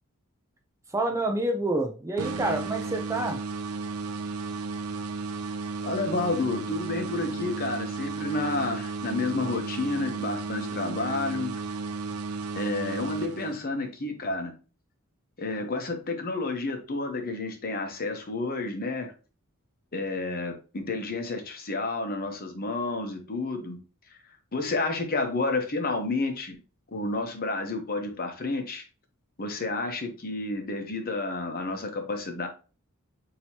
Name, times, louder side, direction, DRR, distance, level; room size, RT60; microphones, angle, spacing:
voice 1, 0.9-3.4, right 2 dB, 15° right, 3 dB, 0.5 m, -28 dB
sound 1, 2.2-13.9, right 4 dB, 80° right, 0.6 m, -34 dB
voice 2, 5.8-11.6 12.5-14.5 15.4-19.1 19.9-23.8 24.1-24.2 24.5-26.6 26.9-28.8 29.4-32.5, left 3 dB, 45° left, 5 dB, 0.9 m, -30 dB
6.1 x 2.9 x 2.8 m, 0.35 s
head